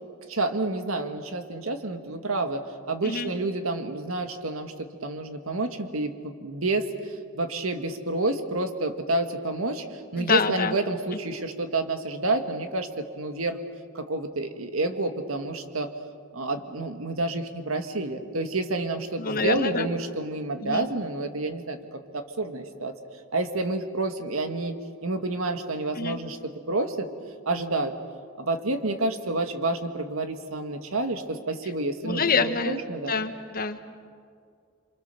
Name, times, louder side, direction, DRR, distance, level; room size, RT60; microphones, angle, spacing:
voice 1, 0.3-13.6 13.9-15.9 16.3-21.8 22.1-22.9 23.3-24.7 25.0-27.1 27.5-27.9 28.4-33.2, right 2 dB, 85° right, 7 dB, 1.9 m, -29 dB
voice 2, 10.2-10.8 19.2-19.9 20.6-20.9 26.0-26.2 32.0-32.8 33.1-33.9, left 4 dB, 45° left, 9 dB, 1.3 m, -26 dB
27.5 x 25.5 x 6.9 m, 2.2 s
head